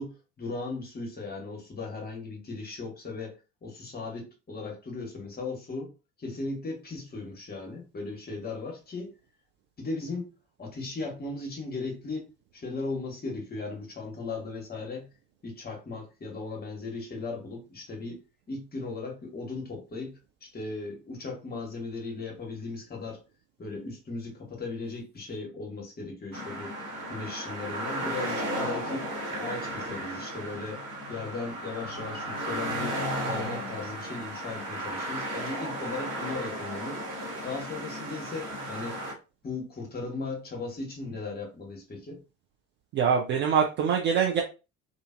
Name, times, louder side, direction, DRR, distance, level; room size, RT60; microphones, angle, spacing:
voice 1, 0.0-5.9 6.2-9.1 9.8-10.3 10.6-12.3 12.5-15.1 15.4-18.2 18.5-23.2 23.6-26.8 27.1-29.1 29.4-30.8 31.1-37.0 37.4-39.0 39.4-42.2, left 3 dB, 20° left, 0.9 m, -37 dB
sound 1, 26.3-39.1, right 1 dB, 55° right, 1.4 m, -34 dB
voice 2, 42.9-44.4, right 7 dB, 30° right, 0.3 m, -24 dB
2.4 x 2.4 x 2.3 m
figure-of-eight pair, 55°, 44 cm